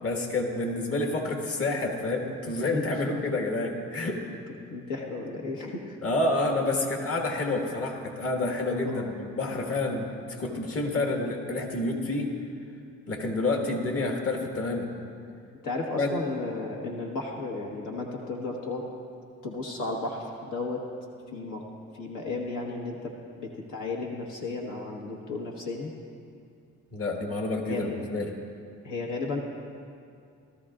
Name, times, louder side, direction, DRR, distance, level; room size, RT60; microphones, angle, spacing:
voice 1, 0.0-4.2 6.0-12.3 13.1-14.9 16.0-16.1 26.9-28.3, left 2 dB, 50° left, 1 dB, 1.7 m, -29 dB
voice 2, 4.7-6.0 8.9-9.1 15.6-18.9 19.4-20.8 21.3-21.6 22.0-25.9 27.7-27.9 28.8-29.4, left 3 dB, 80° left, -1 dB, 1.4 m, -34 dB
17.5 x 13.0 x 2.5 m, 2.4 s
cardioid pair, 90°, 30 cm